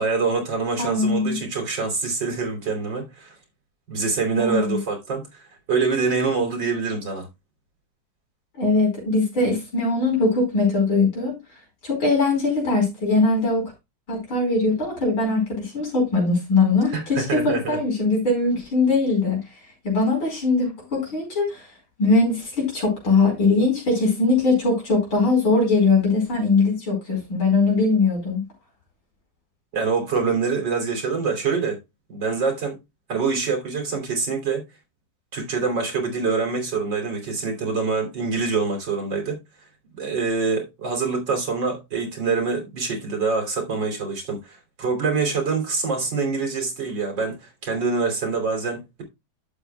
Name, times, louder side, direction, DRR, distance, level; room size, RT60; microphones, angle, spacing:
voice 1, 0.0-3.3 3.9-5.4 5.7-7.3 16.9-17.8 29.7-31.8 32.1-32.8 33.1-34.6 35.3-39.4 40.0-47.4 47.6-49.0, right 4 dB, 60° right, 3.7 m, -25 dB
voice 2, 0.8-1.4 4.4-4.8 8.6-11.4 11.8-13.7 14.1-19.4 19.8-21.7 22.0-28.4, left 3 dB, 80° left, 5.6 m, -21 dB
11.5 x 8.2 x 2.3 m
omnidirectional pair, 2.2 m